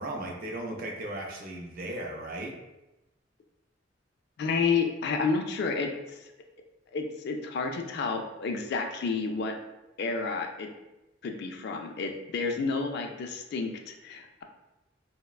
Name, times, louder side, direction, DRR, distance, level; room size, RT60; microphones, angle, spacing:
voice 1, 0.0-2.5, right 1 dB, 50° right, 0 dB, 0.5 m, -36 dB
voice 2, 4.4-6.2 6.9-9.5 10.0-10.7 11.2-14.4, left 4 dB, 55° left, 4 dB, 0.3 m, -30 dB
3.2 x 2.1 x 2.3 m, 0.98 s
head